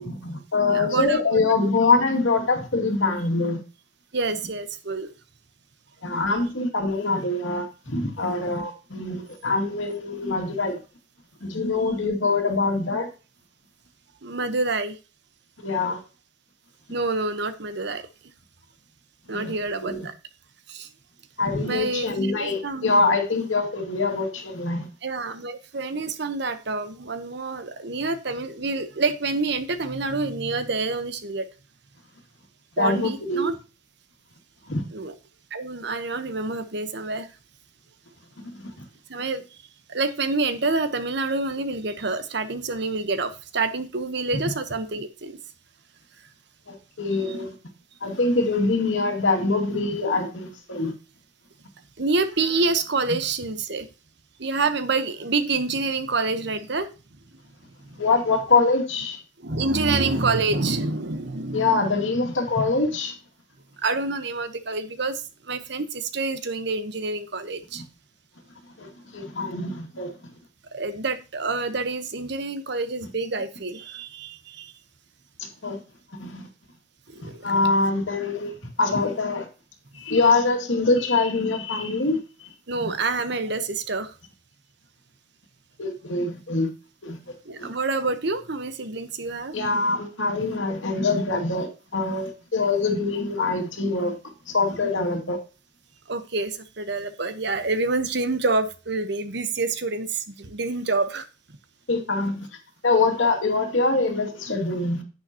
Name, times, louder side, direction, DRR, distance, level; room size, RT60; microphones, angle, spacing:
voice 1, 0.0-3.6 6.0-10.8 11.4-13.1 15.6-16.0 19.3-19.5 19.8-20.1 21.4-24.9 32.8-33.5 34.7-34.8 38.4-38.7 46.7-47.5 48.0-50.9 58.0-59.2 61.5-63.1 68.8-70.1 75.4-75.8 76.1-76.5 77.2-78.5 78.8-79.5 79.9-82.9 85.8-86.7 87.0-87.2 87.6-87.7 89.5-94.1 94.5-95.4 101.9-102.5 102.8-105.0, left 3 dB, 85° left, 2.3 m, -24 dB
voice 2, 0.7-1.2 1.6-1.7 4.1-5.1 8.3-8.4 14.2-15.0 16.9-18.1 19.3-20.1 20.7-20.9 21.7-22.9 25.0-31.5 32.8-33.5 34.9-35.1 35.5-37.3 39.1-39.4 39.9-45.4 52.0-53.9 54.4-56.9 57.9-58.0 59.4-61.7 63.8-67.8 70.7-74.7 77.1-77.4 82.7-84.1 87.4-89.6 96.1-101.3, right 3 dB, 60° right, 1.1 m, -27 dB
10.5 x 8.8 x 2.9 m
head